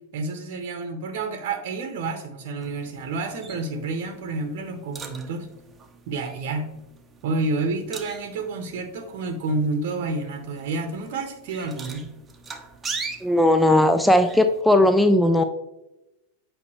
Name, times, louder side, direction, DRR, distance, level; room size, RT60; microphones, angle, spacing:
voice 1, 0.1-5.5 6.1-6.7 7.2-12.1, right 3 dB, 50° right, 6 dB, 0.9 m, -29 dB
sound 1, 2.6-14.6, right 4 dB, 15° right, 0.9 m, -41 dB
voice 2, 13.2-15.4, left 1 dB, 5° left, 8 dB, 0.4 m, -17 dB
8.3 x 5.3 x 3.1 m, 0.94 s
figure-of-eight pair, 90°, 0 cm